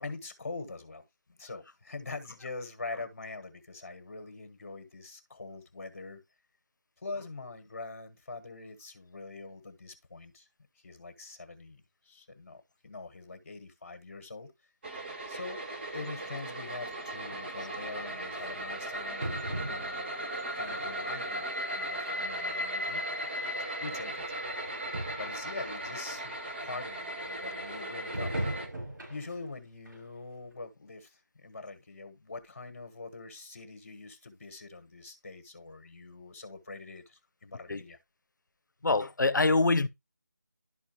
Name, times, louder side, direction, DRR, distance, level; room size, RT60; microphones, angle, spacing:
voice 1, 0.0-1.0 1.3-6.2 7.0-10.5 10.8-14.5 15.3-15.6 15.9-20.1 20.5-21.5 21.8-24.2 25.1-26.4 26.6-28.5 29.1-38.0, left 3 dB, 45° left, 1.3 m, -44 dB
sound 1, 14.8-28.7, right 1 dB, 35° right, 1.4 m, -37 dB
sound 2, 17.3-17.4 18.4-18.5 19.2-20.1 20.7-21.2 21.6-21.7 22.7-22.8 22.9-23.0 23.9-24.0 24.3-24.4 24.6-24.7 24.9-25.4 25.9-26.0 28.1-29.4 29.8-30.0 30.5-30.6, right 1 dB, 85° right, 4.9 m, -37 dB
voice 2, 38.8-39.9, left 3 dB, 85° left, 0.7 m, -24 dB
11.5 x 4.3 x 2.9 m
figure-of-eight pair, 170°, 10 cm